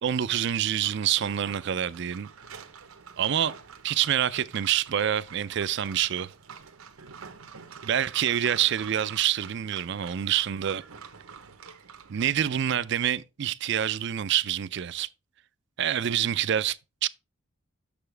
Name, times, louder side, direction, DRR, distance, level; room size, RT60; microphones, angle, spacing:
voice 1, 0.0-2.3 3.2-3.5 3.8-6.3 7.8-10.8 12.1-15.1 15.8-17.1, right 10 dB, 55° right, 0.4 m, -27 dB
sound 1, 0.8-12.3, right 6 dB, 85° right, 1.0 m, -47 dB
7.0 x 6.9 x 3.3 m
head